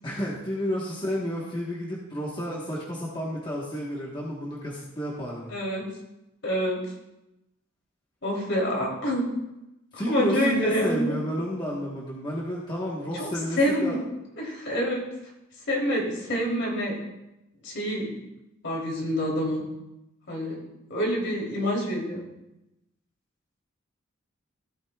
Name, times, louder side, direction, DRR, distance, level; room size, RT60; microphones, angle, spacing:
voice 1, 0.0-5.5 9.9-14.0, equal, 20° left, -4 dB, 1.2 m, -31 dB
voice 2, 5.5-5.8 6.4-6.8 8.2-9.3 9.9-11.1 13.1-13.3 13.5-14.0 14.4-15.0 15.7-17.0 17.6-18.2 18.6-19.6 20.3-20.6 20.9-22.2, equal, 60° left, -2 dB, 3.1 m, -26 dB
15.0 x 8.8 x 2.3 m, 0.92 s
head